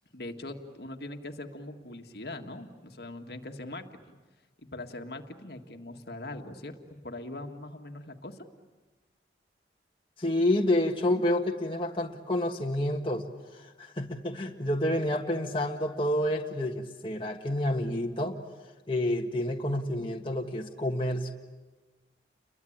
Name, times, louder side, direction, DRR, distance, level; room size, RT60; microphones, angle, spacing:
voice 1, 0.1-4.2 4.6-8.4, left 2 dB, 60° left, 5 dB, 1.8 m, -41 dB
voice 2, 10.2-13.2 13.8-18.4 18.9-21.3, left 1 dB, 30° left, 1 dB, 1.5 m, -29 dB
30.0 x 22.5 x 8.7 m, 1.2 s
head